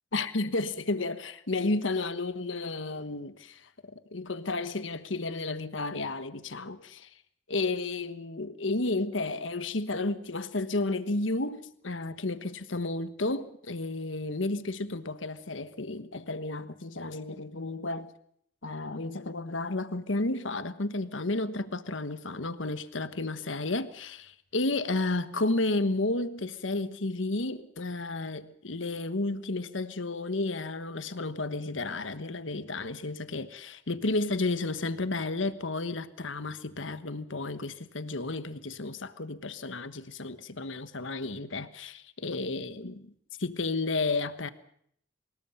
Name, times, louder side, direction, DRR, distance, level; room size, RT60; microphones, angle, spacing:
voice 1, 0.1-7.1 7.5-18.1 18.6-43.1 43.4-44.5, left 2 dB, 80° left, 1.3 m, -32 dB
24.5 x 21.0 x 5.6 m
head